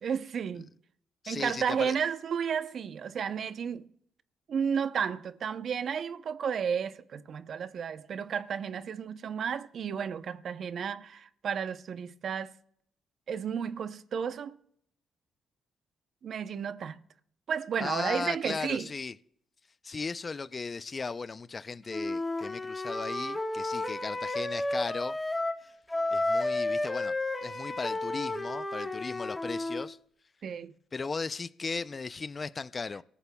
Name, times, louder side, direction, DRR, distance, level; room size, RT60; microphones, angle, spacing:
voice 1, 0.0-0.7 1.3-3.9 4.5-12.5 13.3-14.6 16.2-17.0 17.5-18.9 30.4-30.7, right 7 dB, 55° right, 0.7 m, -32 dB
voice 2, 1.2-1.9 17.8-19.1 19.8-25.2 26.1-27.1 27.4-30.0 30.9-33.0, left 4 dB, 35° left, 0.4 m, -36 dB
Wind instrument woodwind instrument, 21.9-25.6 25.9-29.9, left 2 dB, 15° left, 1.3 m, -32 dB
25.0 x 14.0 x 2.3 m
cardioid pair, 90°, 0 cm